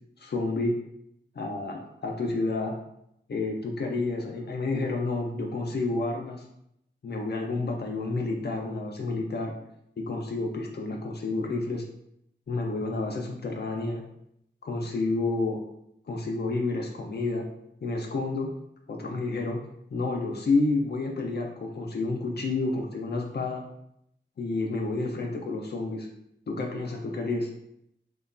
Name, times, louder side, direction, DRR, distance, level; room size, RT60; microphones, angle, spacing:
voice 1, 0.2-0.8 1.4-2.8 3.3-6.4 7.0-9.5 10.0-11.8 12.5-14.0 14.6-15.6 16.1-17.5 17.8-18.5 18.9-19.6 19.9-23.6 24.4-26.1 26.5-27.5, left 3 dB, 60° left, 1 dB, 0.4 m, -30 dB
3.0 x 2.1 x 2.4 m, 0.77 s
wide cardioid pair, 90°, 19 cm